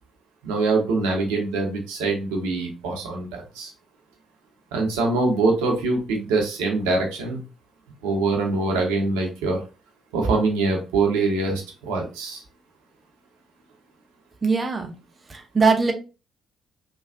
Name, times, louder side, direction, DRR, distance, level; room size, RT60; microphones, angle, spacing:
voice 1, 0.4-3.7 4.7-7.4 8.0-9.6 10.1-12.4, right 3 dB, 75° right, 1 dB, 0.7 m, -24 dB
voice 2, 14.4-14.9 15.3-15.9, right 4 dB, 35° right, 5 dB, 0.6 m, -21 dB
3.4 x 2.3 x 2.4 m, 0.32 s
hypercardioid pair, 45°, 0 cm